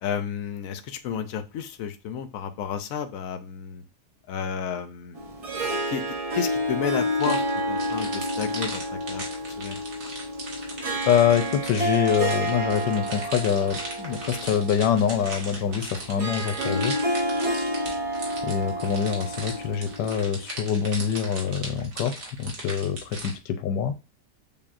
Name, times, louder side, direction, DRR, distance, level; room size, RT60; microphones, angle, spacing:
voice 1, 0.0-3.8 4.3-5.3 5.9-6.0 6.3-9.2 9.6-9.8, left 8 dB, 65° left, 9 dB, 0.9 m, -32 dB
Harp, 5.1-20.4, equal, 35° right, 0.6 m, -30 dB
sound 1, 7.2-23.3, right 2 dB, 55° right, 1.7 m, -38 dB
voice 2, 11.1-16.9 18.4-22.1 22.4-23.9, left 8 dB, 90° left, 8 dB, 1.3 m, -25 dB
6.8 x 2.7 x 2.5 m, 0.29 s
omnidirectional pair, 1.8 m